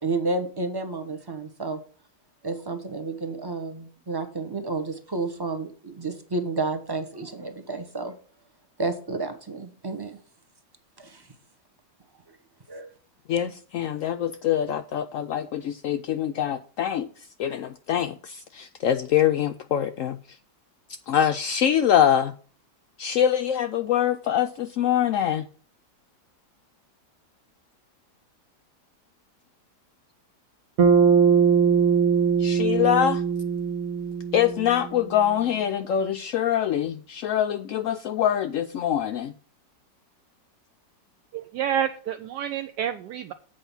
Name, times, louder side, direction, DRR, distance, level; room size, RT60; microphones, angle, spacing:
voice 1, 0.0-1.8 2.4-8.1 8.8-10.2 11.0-11.3 12.3-12.4 12.7-12.9, right 3 dB, 20° right, 0.7 m, -31 dB
voice 2, 13.3-17.1 17.4-20.2 21.1-22.3 23.0-25.5 32.4-33.2 34.3-39.3, left 10 dB, 80° left, 0.7 m, -24 dB
Bass guitar, 30.8-35.2, right 6 dB, 60° right, 1.4 m, -21 dB
voice 3, 41.3-43.3, right 9 dB, 75° right, 1.2 m, -29 dB
7.9 x 4.8 x 7.0 m
omnidirectional pair, 1.9 m